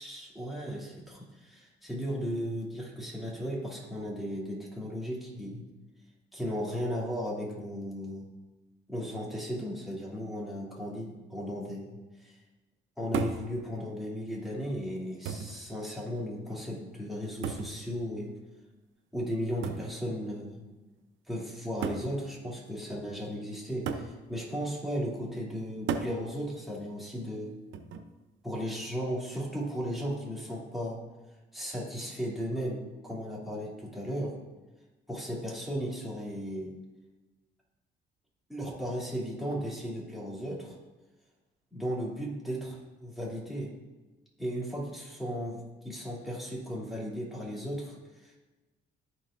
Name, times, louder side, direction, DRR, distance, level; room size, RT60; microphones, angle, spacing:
voice 1, 0.0-5.6 6.3-8.3 8.9-12.4 13.0-18.3 19.1-20.6 21.3-27.6 28.4-31.0 31.5-34.3 35.1-36.7 38.5-40.8 41.7-43.7 44.4-48.4, equal, ahead, -5 dB, 2.7 m, -36 dB
sound 1, 13.1-13.5 14.5-14.6 15.2-15.6 17.4-17.8 19.6-19.9 21.0-21.1 21.8-22.1 23.9-24.1 25.9-26.2 27.7-28.1, right 6 dB, 80° right, 0.7 m, -33 dB
14.0 x 4.7 x 2.5 m, 1.2 s
cardioid pair, 90°, 20 cm